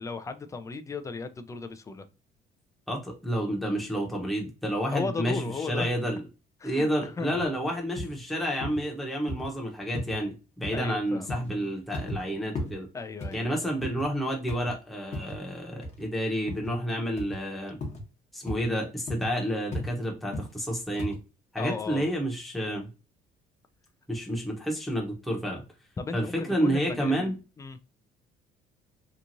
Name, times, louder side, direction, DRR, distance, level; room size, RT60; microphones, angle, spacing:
voice 1, 0.0-2.1 4.9-5.9 6.6-7.6 10.7-11.5 12.9-13.6 21.6-22.1 26.0-27.8, left 4 dB, 20° left, 9 dB, 0.4 m, -36 dB
voice 2, 2.9-6.2 6.6-12.9 13.3-17.8 18.3-21.2 21.5-22.9 24.1-25.6 26.1-27.4, equal, ahead, -1 dB, 0.8 m, -30 dB
sound 1, 7.3-7.5 8.0-8.2 8.6-8.8 9.3-9.5 9.9-10.2 10.6-10.9 11.3-11.5 11.9-12.2 12.6-12.8 13.2-14.1 14.5-14.7 15.1-15.4 15.8-16.0 16.5-16.7 17.2-17.4 17.8-18.0 18.5-18.7 19.1-19.3 19.7-19.9 20.3-20.5 21.0-21.2, left 1 dB, 40° left, 1.0 m, -35 dB
2.9 x 2.4 x 2.6 m, 0.29 s
cardioid pair, 110°, 17 cm